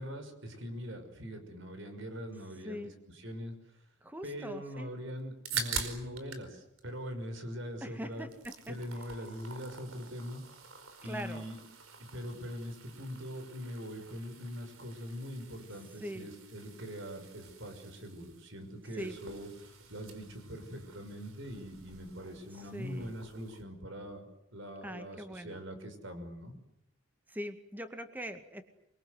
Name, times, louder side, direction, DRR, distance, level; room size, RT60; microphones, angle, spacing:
voice 1, 0.0-3.5 4.2-8.3 8.7-10.4 11.0-11.6 12.1-26.5, equal, 60° right, 7 dB, 6.1 m, -42 dB
voice 2, 4.0-4.9 7.8-8.8 11.0-11.5 16.0-16.3 19.0-19.2 22.7-23.1 24.8-25.6 27.3-28.6, equal, 10° right, 8 dB, 2.0 m, -42 dB
sound 1, 5.2-6.5 6.8-7.8 8.1-23.6, right 6 dB, 75° right, 4.9 m, -46 dB
28.5 x 23.0 x 8.0 m, 0.80 s
head